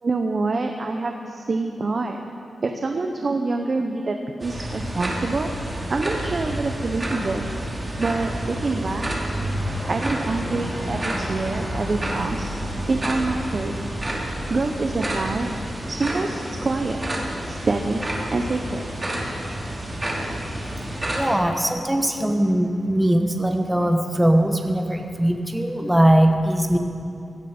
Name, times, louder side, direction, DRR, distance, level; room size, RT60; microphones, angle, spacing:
voice 1, 0.0-2.2 2.6-5.5 5.9-7.5 8.0-9.1 9.9-12.5 12.9-13.7 14.5-15.5 15.9-17.0 17.4-18.0 18.3-18.9, right 3 dB, 50° right, 4 dB, 0.9 m, -26 dB
sound 1, 4.4-21.3, right 1 dB, 25° right, 2.8 m, -29 dB
voice 2, 21.1-26.8, right 1 dB, 10° right, 4 dB, 1.2 m, -20 dB
17.0 x 13.5 x 4.5 m, 2.5 s
cardioid pair, 80°, 0 cm